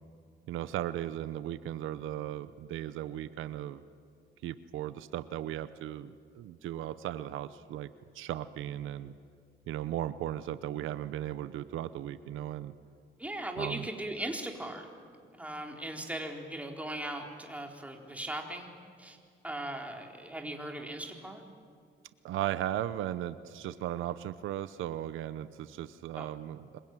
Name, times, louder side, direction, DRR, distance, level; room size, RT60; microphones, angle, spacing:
voice 1, 0.5-3.8 4.4-7.9 8.1-9.1 9.7-12.7 13.6-13.8 22.2-26.8, right 12 dB, 85° right, 14 dB, 0.9 m, -36 dB
voice 2, 13.2-14.9 15.4-18.7 19.0-19.2 19.4-21.4 26.2-26.3, right 1 dB, 5° right, 2 dB, 4.1 m, -38 dB
26.5 x 23.0 x 9.1 m, 2.2 s
cardioid pair, 90°, 20 cm